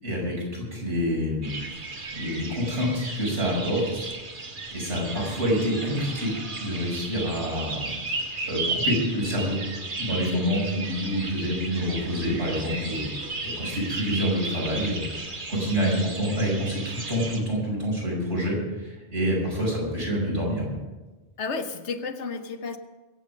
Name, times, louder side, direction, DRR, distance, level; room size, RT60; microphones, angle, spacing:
voice 1, 0.0-4.1 4.7-6.3 6.6-7.9 8.5-9.6 10.0-13.1 13.4-20.8, equal, 85° right, -4 dB, 6.0 m, -27 dB
sound 1, 1.4-17.4, right 3 dB, 50° right, 1.6 m, -34 dB
voice 2, 10.1-10.5 21.4-22.8, left 4 dB, 90° left, 8 dB, 1.3 m, -32 dB
22.5 x 8.3 x 5.3 m, 1.2 s
omnidirectional pair, 1.1 m